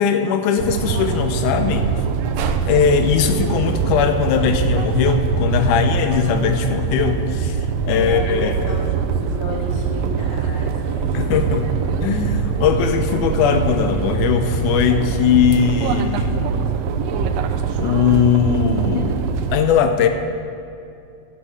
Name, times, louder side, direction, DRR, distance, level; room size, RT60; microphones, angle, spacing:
voice 1, 0.0-2.0 2.7-8.5 11.1-11.7 12.0-16.4 17.8-19.2 19.5-20.1, left 7 dB, 80° left, 7 dB, 2.1 m, -19 dB
sound 1, 0.6-19.5, right 6 dB, 85° right, 1.4 m, -23 dB
voice 2, 7.9-11.1, left 2 dB, 35° left, -3 dB, 1.7 m, -33 dB
10.0 x 8.1 x 6.8 m, 2.6 s
omnidirectional pair, 3.7 m